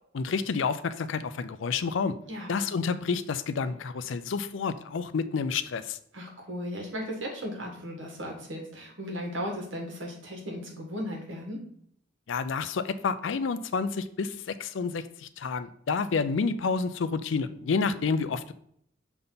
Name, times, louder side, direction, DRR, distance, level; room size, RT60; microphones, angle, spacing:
voice 1, 0.1-2.2 2.5-6.0 12.3-18.5, left 5 dB, 75° left, 13 dB, 0.4 m, -29 dB
voice 2, 6.1-11.6, equal, 80° right, 0 dB, 1.7 m, -36 dB
6.8 x 3.6 x 4.0 m, 0.69 s
head